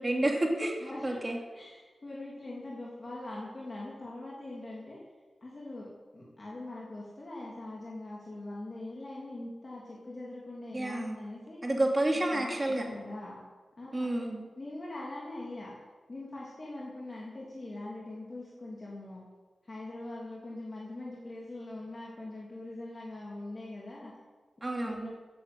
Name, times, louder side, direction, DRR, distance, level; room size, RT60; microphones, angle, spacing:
voice 1, 0.0-1.4 10.7-11.2 11.6-12.9 13.9-14.5 24.6-25.1, right 1 dB, 20° right, 1 dB, 2.7 m, -30 dB
voice 2, 0.8-1.2 1.5-5.0 5.4-11.6 12.3-13.4 13.8-14.1 14.6-15.7 16.1-19.2 19.6-24.1 24.6-25.1, left 2 dB, 30° left, -5 dB, 3.0 m, -42 dB
15.5 x 9.6 x 7.9 m, 1.3 s
wide cardioid pair, 145°, 0 cm